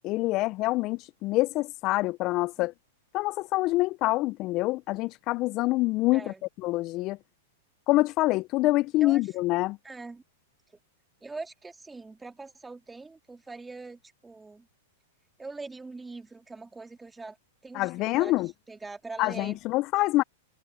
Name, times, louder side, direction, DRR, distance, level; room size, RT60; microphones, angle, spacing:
voice 1, 0.0-2.7 3.1-6.3 6.6-7.2 7.9-9.8 17.7-18.5 19.2-20.2, left 19 dB, 40° left, 0.7 m, -26 dB
voice 2, 6.1-6.4 9.0-9.3 9.8-10.2 11.2-14.7 15.4-17.4 17.6-19.6, right 3 dB, 10° right, 2.9 m, -42 dB
hypercardioid pair, 105°, 0 cm